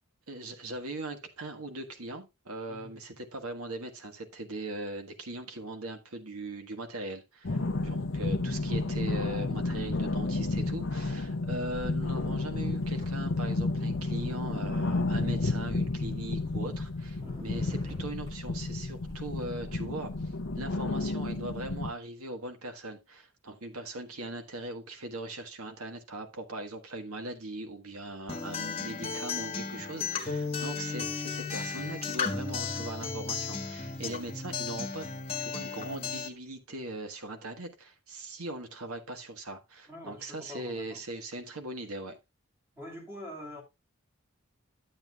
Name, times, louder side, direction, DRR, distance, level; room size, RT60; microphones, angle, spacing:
voice 1, 0.3-7.6 7.8-35.1 35.4-42.2, right 2 dB, 80° right, 1.5 m, -40 dB
voice 2, 2.7-3.0 7.5-7.8 17.2-17.5 20.5-20.7 39.9-41.0 42.7-43.6, left 1 dB, 10° right, 2.7 m, -45 dB
sound 1, 7.4-21.9, left 2 dB, 60° left, 0.8 m, -31 dB
sound 2, 12.6-13.3 13.5-14.5 15.1-16.7 17.0-18.4 19.0-19.5, left 1 dB, 30° right, 4.7 m, -53 dB
Acoustic guitar, 28.3-36.3, left 5 dB, 25° left, 1.6 m, -34 dB
11.5 x 7.9 x 2.3 m
head